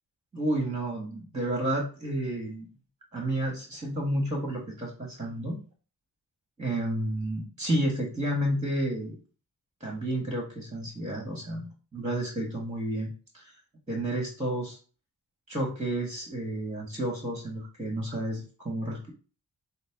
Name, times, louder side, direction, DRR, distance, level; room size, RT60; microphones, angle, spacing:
voice 1, 0.3-2.7 3.1-5.6 6.6-9.1 9.8-13.5 13.9-14.8 15.5-19.1, right 1 dB, 15° right, 0 dB, 1.5 m, -31 dB
6.2 x 2.1 x 3.6 m, 0.36 s
cardioid pair, 45°, 44 cm